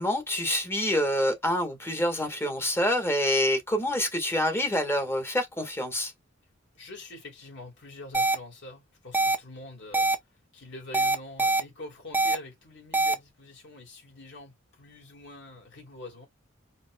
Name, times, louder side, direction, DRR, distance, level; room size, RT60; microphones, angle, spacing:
voice 1, 0.0-6.1, left 1 dB, 15° left, 1.6 m, -27 dB
voice 2, 6.7-10.1 10.5-16.3, left 2 dB, 60° left, 3.1 m, -45 dB
sound 1, 8.1-8.3 9.1-9.4 9.9-10.1 10.9-11.6 12.1-12.4 12.9-13.1, right 2 dB, 10° right, 0.7 m, -23 dB
5.2 x 4.0 x 2.2 m
head